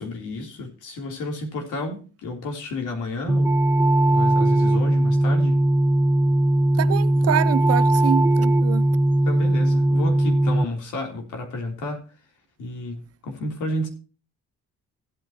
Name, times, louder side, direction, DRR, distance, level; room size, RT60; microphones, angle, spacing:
voice 1, 0.0-3.5 4.1-5.6 9.3-12.0 12.6-13.9, left 1 dB, 85° left, 3.4 m, -31 dB
sound 1, 3.3-10.7, right 1 dB, 10° right, 0.6 m, -19 dB
voice 2, 6.8-8.9, right 10 dB, 55° right, 0.6 m, -26 dB
16.0 x 9.0 x 2.9 m
cardioid pair, 90°, 30 cm